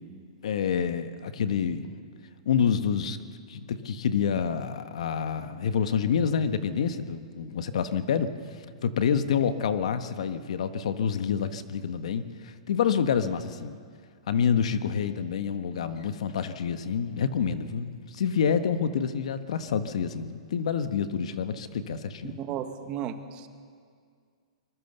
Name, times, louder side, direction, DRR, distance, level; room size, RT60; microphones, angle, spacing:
voice 1, 0.4-1.9 2.4-3.2 3.5-8.3 8.8-13.8 14.3-22.3, left 7 dB, 70° left, 10 dB, 1.3 m, -27 dB
voice 2, 22.2-23.5, right 9 dB, 25° right, 8 dB, 1.4 m, -34 dB
24.5 x 21.5 x 6.9 m, 2.1 s
hypercardioid pair, 155°, 3 cm